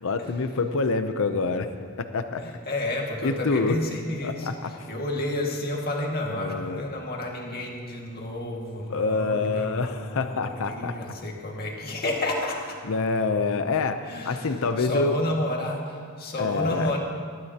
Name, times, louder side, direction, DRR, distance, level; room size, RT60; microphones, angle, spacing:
voice 1, 0.0-2.4 3.2-3.8 4.2-4.9 6.3-6.8 8.9-11.2 12.8-15.2 16.4-16.9, left 3 dB, 65° left, 8 dB, 0.7 m, -27 dB
voice 2, 2.4-4.5 4.9-12.8 14.1-17.0, left 1 dB, 45° left, -1 dB, 2.0 m, -31 dB
19.5 x 13.0 x 2.9 m, 2.2 s
head